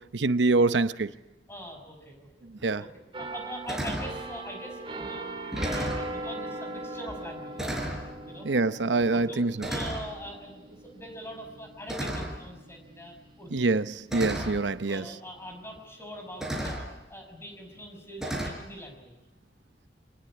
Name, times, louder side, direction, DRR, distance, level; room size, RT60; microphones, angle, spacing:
voice 1, 0.1-1.1 2.6-2.8 8.4-9.7 13.5-15.0, right 3 dB, 90° right, 0.8 m, -25 dB
voice 2, 1.5-2.5 2.8-5.3 5.7-7.7 8.3-8.5 9.0-9.4 9.7-13.7 14.9-16.8 17.1-19.2, equal, 15° left, 5.8 m, -43 dB
sound 1, 2.6-2.7 3.2-3.4 3.7-4.2 5.0-5.1 5.4-6.1 7.1-7.3 7.6-8.1 9.0-9.2 9.6-10.1 11.9-12.5 13.6-13.7 14.1-14.6 15.8-15.9 16.4-16.9 18.2-18.5, right 1 dB, 5° right, 4.4 m, -33 dB
sound 2, 3.1-14.7 15.1-15.4, right 2 dB, 30° right, 3.0 m, -40 dB
25.5 x 19.5 x 9.9 m
head